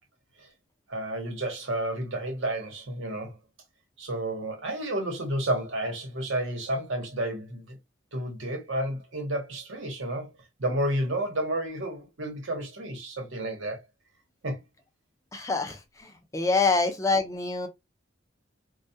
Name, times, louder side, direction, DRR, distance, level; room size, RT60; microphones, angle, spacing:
voice 1, 0.9-3.3 4.0-7.8 8.1-10.3 10.6-13.8 14.4-14.6, right 1 dB, 75° right, 0.9 m, -31 dB
voice 2, 15.3-17.7, left 3 dB, 15° left, 0.5 m, -26 dB
2.2 x 2.2 x 2.6 m
head